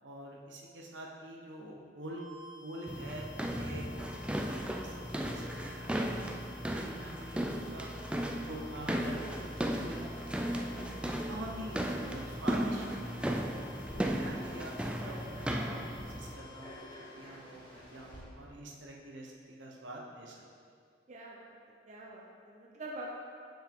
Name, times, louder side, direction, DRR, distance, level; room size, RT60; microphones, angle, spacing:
voice 1, 0.0-2.2 2.6-3.9 4.6-7.9 8.4-10.1 10.5-10.8 11.0-13.3 13.9-16.7 17.1-20.4, right 1 dB, 75° right, -1 dB, 1.0 m, -46 dB
sound 1, 2.0-17.3, left 8 dB, 40° left, 0.8 m, -54 dB
sound 2, 2.9-16.3, right 1 dB, 5° right, 0.3 m, -36 dB
Frog, 7.9-18.2, equal, 25° left, 1.7 m, -51 dB
voice 2, 21.1-21.5 21.9-23.1, right 1 dB, 40° right, -2 dB, 0.6 m, -45 dB
7.0 x 5.7 x 3.7 m, 2.2 s
head